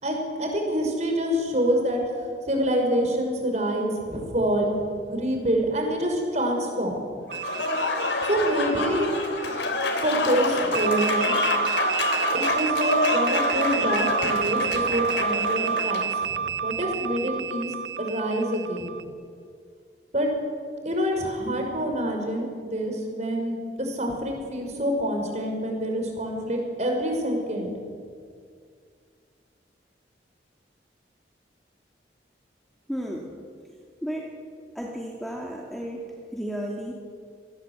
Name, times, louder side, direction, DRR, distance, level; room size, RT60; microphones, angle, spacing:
voice 1, 0.0-2.0 2.5-7.0 8.2-9.1 10.0-11.4 12.3-16.1 16.3-18.9 20.1-20.3 20.8-27.7, equal, 40° right, 2 dB, 5.4 m, -26 dB
Applause / Crowd, 7.3-16.1, left 3 dB, 85° left, 3.4 m, -27 dB
sound 1, 7.3-9.8 10.7-19.0, right 7 dB, 75° right, 1.2 m, -29 dB
voice 2, 32.9-33.3 34.0-34.3 34.7-36.1 36.3-36.9, equal, ahead, -1 dB, 2.1 m, -33 dB
26.5 x 18.5 x 8.2 m, 2.2 s
head